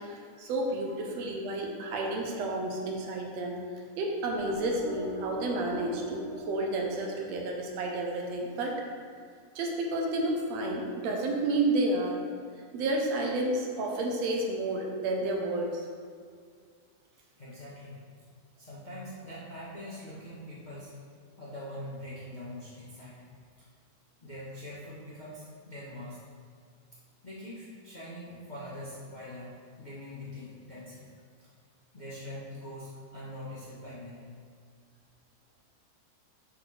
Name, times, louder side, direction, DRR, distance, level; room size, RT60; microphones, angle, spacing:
voice 1, 0.0-3.6 4.0-8.8 9.6-12.2 12.7-15.8, right 2 dB, 65° right, 0 dB, 1.8 m, -31 dB
sound 1, 4.3-7.9, left 3 dB, 80° left, 2.3 m, -43 dB
voice 2, 17.4-18.0 18.6-20.9 21.4-23.2 23.6-23.7 24.2-26.2 27.2-31.1 31.4-31.5 31.9-34.3, left 1 dB, 30° left, -9 dB, 0.8 m, -43 dB
7.7 x 4.4 x 5.8 m, 2.1 s
omnidirectional pair, 3.6 m